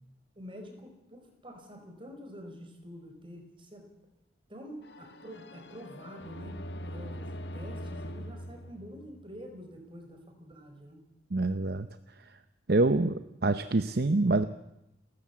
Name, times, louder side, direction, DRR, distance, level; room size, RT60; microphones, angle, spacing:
voice 1, 0.4-3.9 4.5-11.0, equal, 30° right, 4 dB, 4.8 m, -47 dB
sound 1, 4.8-9.6, equal, 70° left, 1.6 m, -42 dB
voice 2, 11.3-11.9 12.7-14.4, right 2 dB, 60° right, 11 dB, 0.8 m, -26 dB
30.0 x 14.0 x 8.5 m, 0.90 s
head